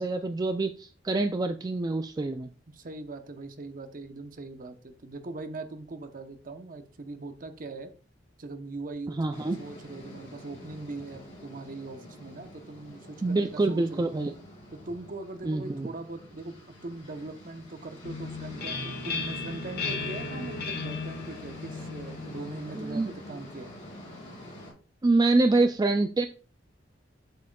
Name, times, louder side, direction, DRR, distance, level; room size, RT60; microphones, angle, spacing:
voice 1, 0.0-2.5 9.1-9.6 13.2-14.3 15.5-15.9 22.7-23.1 25.0-26.3, right 2 dB, 20° right, 7 dB, 0.3 m, -26 dB
voice 2, 2.7-7.9 8.4-14.1 14.7-23.7, right 2 dB, 50° right, 8 dB, 0.8 m, -41 dB
sound 1, 9.3-24.7, left 1 dB, 40° left, 4.0 m, -47 dB
sound 2, 18.0-23.6, left 4 dB, 55° left, 1.6 m, -36 dB
7.7 x 7.4 x 2.3 m, 0.38 s
head